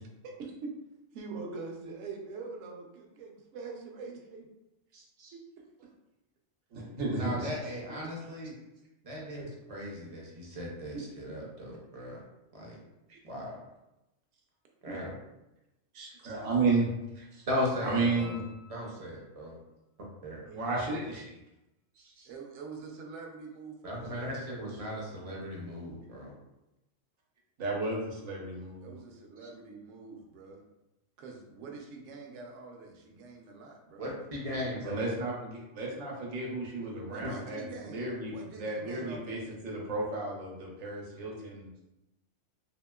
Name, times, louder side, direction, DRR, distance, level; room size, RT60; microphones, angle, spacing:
voice 1, 0.2-0.7 1.1-4.5 5.3-5.4 8.0-8.1 10.9-11.1 14.9-15.0 22.2-25.6 28.8-30.6 31.2-34.0 36.8-38.0 38.3-39.8, right 4 dB, 70° right, 1 dB, 0.9 m, -45 dB
voice 2, 4.9-5.3 6.7-7.5 13.1-13.2 15.9-17.4 17.8-18.4 20.5-21.3 22.0-22.3 27.6-28.9 34.9-39.4 39.6-41.7, right 3 dB, 90° right, -2 dB, 1.2 m, -33 dB
voice 3, 7.1-8.5 9.0-12.2 12.5-12.8 13.2-13.6 14.8-15.2 17.5-18.4 18.7-19.6 20.2-20.4 23.8-26.3 34.0-35.0, left 1 dB, 45° right, -3 dB, 0.5 m, -37 dB
sound 1, 18.2-19.5 22.3-22.4, left 2 dB, 40° left, 0.5 m, -54 dB
2.9 x 2.8 x 2.2 m, 0.94 s
omnidirectional pair, 1.3 m